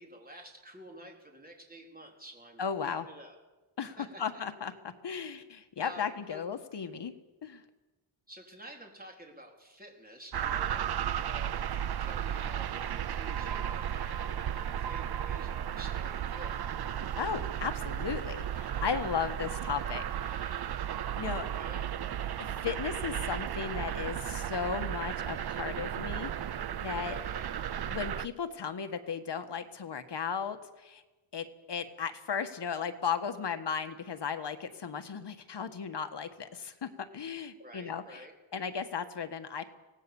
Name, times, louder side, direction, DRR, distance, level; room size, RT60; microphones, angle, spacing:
voice 1, 0.0-3.4 3.8-4.4 5.8-6.4 8.3-16.6 21.5-21.9 27.1-27.5 37.6-38.3, right 1 dB, 20° right, 1 dB, 4.2 m, -50 dB
voice 2, 2.6-3.1 3.8-7.1 7.4-7.6 17.2-20.6 21.2-21.5 22.4-27.2 27.9-31.0 31.3-38.2 38.5-39.6, left 6 dB, 55° left, 8 dB, 1.6 m, -36 dB
sound 1, 10.3-28.3, right 9 dB, 50° right, 0.6 m, -34 dB
25.0 x 18.0 x 7.1 m, 1.2 s
wide cardioid pair, 135°, 48 cm